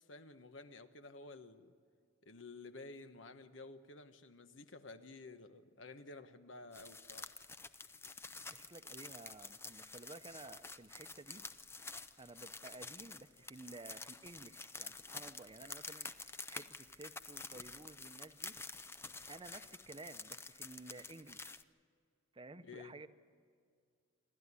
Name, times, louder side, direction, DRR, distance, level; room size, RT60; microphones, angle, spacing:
voice 1, 0.1-1.7 2.2-7.3 22.6-23.0, left 3 dB, 75° left, 9 dB, 1.2 m, -52 dB
sound 1, 6.7-21.6, left 3 dB, 15° left, 0.6 m, -49 dB
voice 2, 8.5-11.5 12.2-18.6 19.3-21.5 22.3-23.1, right 2 dB, 25° right, 11 dB, 0.8 m, -53 dB
27.5 x 12.5 x 9.7 m, 2.2 s
head